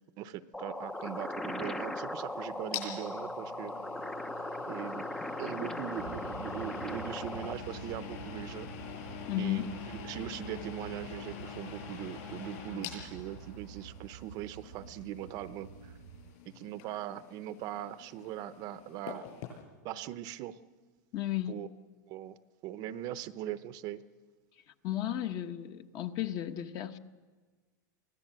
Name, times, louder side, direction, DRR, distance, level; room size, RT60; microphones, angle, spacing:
voice 1, 0.2-3.7 4.6-5.1 5.4-8.7 9.4-16.0 16.5-19.3 19.8-20.6 21.5-21.7 22.1-22.4 22.6-24.0, right 12 dB, 40° right, 13 dB, 0.7 m, -40 dB
sound 1, 0.5-7.5, left 1 dB, 5° left, 0.6 m, -38 dB
sound 2, 0.9-19.6, left 8 dB, 50° left, 7.9 m, -46 dB
sound 3, 6.0-16.3, right 10 dB, 75° right, 0.8 m, -49 dB
voice 2, 9.3-9.7 21.1-21.6 24.8-27.0, left 12 dB, 35° left, 9 dB, 1.1 m, -34 dB
24.5 x 17.5 x 7.6 m, 1.4 s
supercardioid pair, 145°, 10 cm